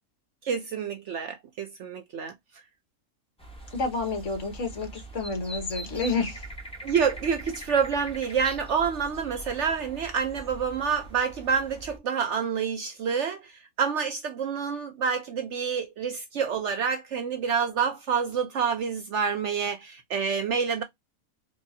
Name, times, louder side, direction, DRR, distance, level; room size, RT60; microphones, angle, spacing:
voice 1, 0.4-2.3 6.8-20.8, right 6 dB, 65° right, 0.8 m, -28 dB
sound 1, 3.4-12.0, right 1 dB, 5° left, 0.8 m, -42 dB
voice 2, 3.7-6.5, left 3 dB, 55° left, 1.4 m, -30 dB
4.5 x 2.3 x 2.7 m
omnidirectional pair, 1.5 m